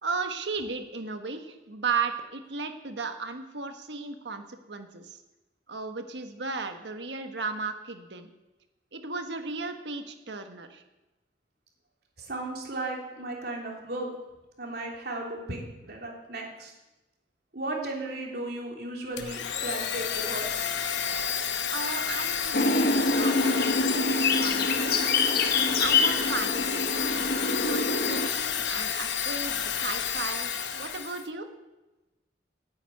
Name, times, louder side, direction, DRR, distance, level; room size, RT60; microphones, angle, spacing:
voice 1, 0.0-5.2 5.7-8.3 8.9-10.8 21.7-23.6 23.9-25.0 25.8-26.9 27.5-31.6, right 4 dB, 85° right, 6 dB, 1.4 m, -35 dB
voice 2, 12.2-14.1 14.6-16.7 17.5-20.7, right 2 dB, 60° right, -1 dB, 3.3 m, -35 dB
Domestic sounds home sounds, 19.2-31.3, left 8 dB, 85° left, 0.9 m, -30 dB
sound 1, 22.5-28.3, left 3 dB, 60° left, 1.2 m, -26 dB
10.0 x 9.2 x 9.0 m, 1.0 s
head